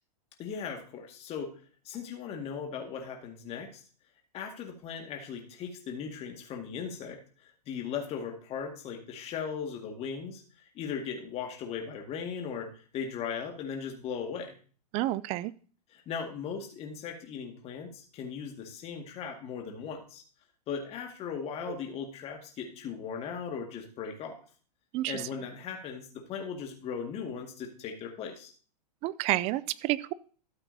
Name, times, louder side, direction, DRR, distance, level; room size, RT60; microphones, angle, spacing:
voice 1, 0.4-1.5 1.9-3.8 4.3-10.4 10.8-14.6 15.9-20.2 20.7-24.4 25.1-28.5, left 6 dB, 30° left, 3 dB, 2.0 m, -38 dB
voice 2, 14.9-15.5 24.9-25.1 29.0-30.1, right 17 dB, 30° right, 19 dB, 0.4 m, -29 dB
13.0 x 8.0 x 2.8 m, 0.40 s
hypercardioid pair, 125°, 21 cm